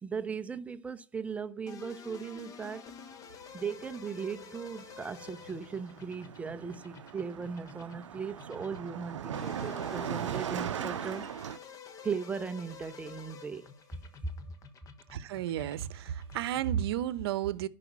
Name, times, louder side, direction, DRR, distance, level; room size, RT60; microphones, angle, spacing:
voice 1, 0.0-2.8 3.5-11.2 12.0-14.0, right 6 dB, 10° right, 0.7 m, -38 dB
sound 1, 1.7-17.0, left 6 dB, 20° left, 1.3 m, -50 dB
Car passing by, 4.1-4.3 4.6-11.6, right 10 dB, 75° right, 0.6 m, -39 dB
voice 2, 15.1-17.7, right 11 dB, 55° right, 0.9 m, -32 dB
10.5 x 5.0 x 7.3 m
hypercardioid pair, 125°, 16 cm